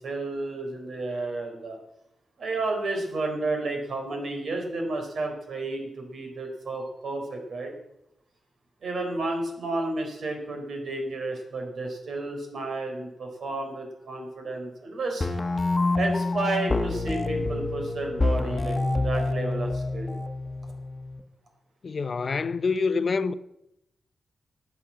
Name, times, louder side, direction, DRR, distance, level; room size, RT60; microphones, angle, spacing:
voice 1, 0.0-1.8 2.4-7.7 8.8-15.3 15.9-20.1, right 2 dB, 65° right, 4.0 m, -31 dB
sound 1, 15.2-21.2, left 2 dB, 25° left, 1.1 m, -27 dB
voice 2, 21.8-23.3, left 4 dB, 45° left, 0.7 m, -26 dB
14.5 x 9.2 x 7.4 m
wide cardioid pair, 125°, 0 cm